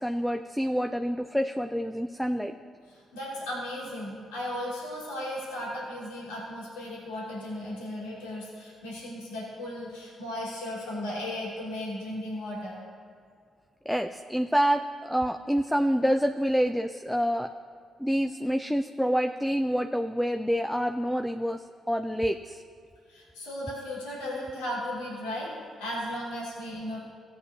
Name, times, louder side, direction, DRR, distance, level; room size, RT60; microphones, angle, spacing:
voice 1, 0.0-2.6 13.9-17.5 18.0-22.6, equal, 5° left, 6 dB, 0.5 m, -27 dB
voice 2, 2.9-12.8 23.1-25.5 25.8-27.0, left 1 dB, 85° left, -7 dB, 2.7 m, -36 dB
17.5 x 8.4 x 2.8 m, 2.2 s
hypercardioid pair, 45°, 0 cm